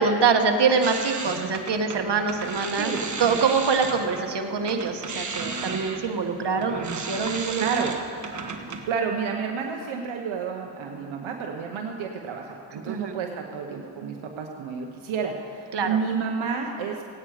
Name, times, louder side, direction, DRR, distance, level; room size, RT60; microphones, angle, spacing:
voice 1, 0.0-2.9 3.2-7.9 12.8-13.2 15.7-16.0, right 5 dB, 60° right, 5 dB, 1.4 m, -24 dB
sound 1, 0.8-4.3 4.6-8.9, right 4 dB, 40° right, 1.4 m, -34 dB
voice 2, 7.6-7.9 8.9-17.0, right 6 dB, 80° right, 2 dB, 1.0 m, -30 dB
17.5 x 9.0 x 4.9 m, 2.5 s
supercardioid pair, 45°, 47 cm